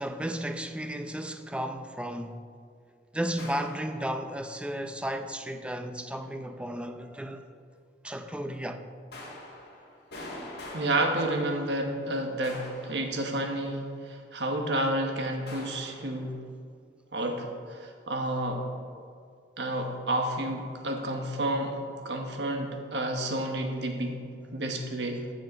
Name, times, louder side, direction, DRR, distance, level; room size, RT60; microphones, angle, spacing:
voice 1, 0.0-2.5 3.1-7.5 8.0-8.9, right 1 dB, 5° right, 0.5 m, -34 dB
sound 1, 3.4-4.5 9.1-12.0 12.4-13.8 15.5-16.3, left 1 dB, 65° left, 2.2 m, -45 dB
voice 2, 10.7-16.3 17.1-17.4 17.7-18.6 19.6-21.8 22.0-24.2 24.5-25.2, right 1 dB, 80° right, 1.3 m, -30 dB
14.0 x 6.4 x 4.3 m
head